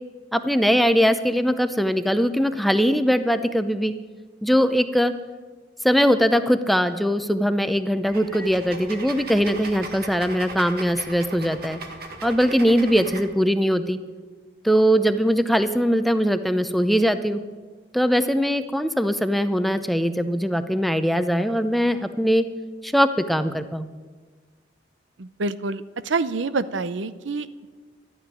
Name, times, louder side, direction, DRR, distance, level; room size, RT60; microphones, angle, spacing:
voice 1, 0.3-3.9 4.4-5.1 5.8-11.8 12.2-14.0 14.6-17.4 17.9-22.4 22.8-23.9, equal, ahead, 10 dB, 0.6 m, -21 dB
sound 1, 8.0-13.2, right 3 dB, 55° right, 1.9 m, -38 dB
voice 2, 25.2-27.7, right 3 dB, 75° right, 14 dB, 0.7 m, -27 dB
12.5 x 9.1 x 9.7 m, 1.4 s
head